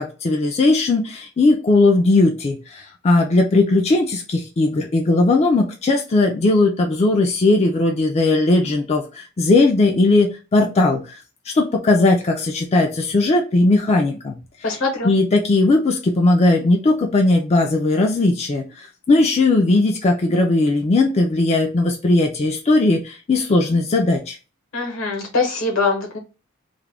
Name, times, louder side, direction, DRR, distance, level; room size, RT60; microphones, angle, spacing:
voice 1, 0.0-11.0 11.5-14.4 14.6-14.8 15.0-24.4, left 2 dB, 30° left, 1 dB, 0.4 m, -18 dB
voice 2, 14.6-15.1 24.7-26.2, left 3 dB, 80° left, 2 dB, 1.0 m, -22 dB
2.4 x 2.1 x 3.2 m, 0.32 s
head